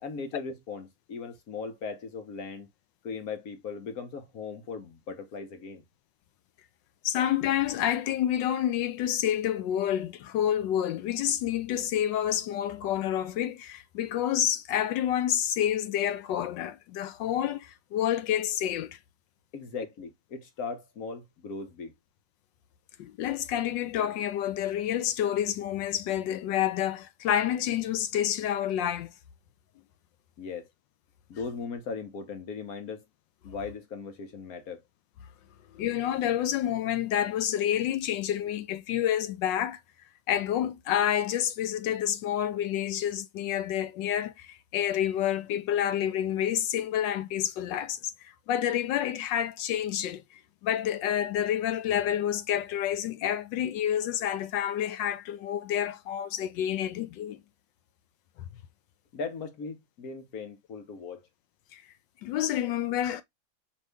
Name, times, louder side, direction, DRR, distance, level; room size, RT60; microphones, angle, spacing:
voice 1, 0.0-2.7 3.0-5.8 19.5-21.9 30.4-30.7 31.3-33.0 33.4-34.8 59.1-61.2, left 5 dB, 55° left, 1.3 m, -38 dB
voice 2, 7.0-19.0 23.0-29.1 35.7-39.8 40.3-48.0 48.2-50.2 50.6-57.4 61.7-61.8 62.2-63.2, left 10 dB, 75° left, 1.1 m, -28 dB
5.3 x 3.0 x 3.3 m
omnidirectional pair, 2.2 m